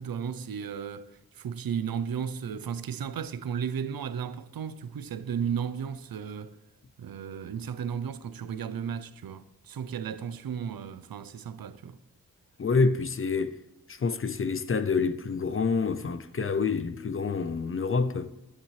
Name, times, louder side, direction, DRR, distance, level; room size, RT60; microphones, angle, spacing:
voice 1, 0.0-6.6 7.0-12.0, right 7 dB, 70° right, 0.6 m, -34 dB
voice 2, 12.6-13.6 13.9-18.3, left 4 dB, 35° left, 0.5 m, -27 dB
10.0 x 9.9 x 3.2 m
wide cardioid pair, 85°, 37 cm